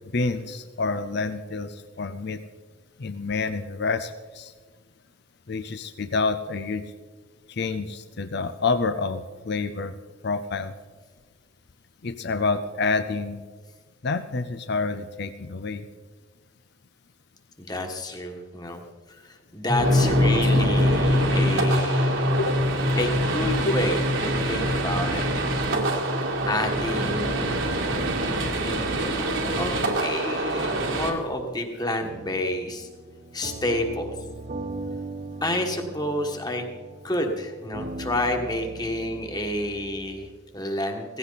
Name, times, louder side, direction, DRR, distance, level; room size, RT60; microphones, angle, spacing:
voice 1, 0.1-2.4 3.0-4.5 5.5-6.8 7.5-9.9 10.2-10.7 12.0-13.4 14.0-15.8 22.4-22.6 23.7-23.8, left 4 dB, 50° left, 10 dB, 0.6 m, -28 dB
voice 2, 17.6-18.8 19.1-22.4 23.0-25.2 26.5-27.7 28.6-32.9 33.3-34.1 35.4-36.6 37.0-41.2, left 1 dB, 20° left, 4 dB, 1.6 m, -29 dB
sound 1, 19.7-28.1, left 2 dB, ahead, 1.1 m, -26 dB
sound 2, 19.8-31.1, right 2 dB, 65° right, 2.1 m, -26 dB
sound 3, 32.0-40.3, right 2 dB, 35° right, 0.7 m, -39 dB
17.0 x 16.0 x 4.1 m, 1.4 s
head